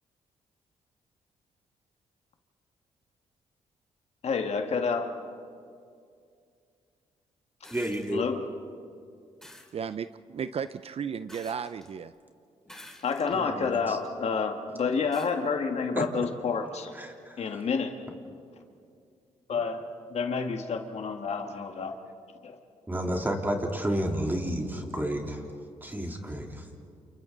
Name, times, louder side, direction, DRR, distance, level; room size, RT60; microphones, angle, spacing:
voice 1, 4.2-5.2 8.1-8.4 13.0-16.9 17.4-18.0 19.5-21.9 22.4-22.6, left 5 dB, 60° left, 5 dB, 2.0 m, -29 dB
sound 1, 7.6-8.1 9.4-9.7 11.3-11.9 12.6-13.4 14.0-14.1 15.1-15.3 16.8-16.9, left 1 dB, 5° left, 3.6 m, -49 dB
voice 2, 7.7-8.2 13.3-14.0 16.0-16.1 16.9-17.4 22.9-25.4 25.8-26.6, right 1 dB, 15° right, 1 dB, 3.5 m, -31 dB
voice 3, 9.7-12.1, right 7 dB, 50° right, 13 dB, 0.6 m, -34 dB
29.5 x 28.5 x 4.0 m, 2.3 s
cardioid pair, 75°, 13 cm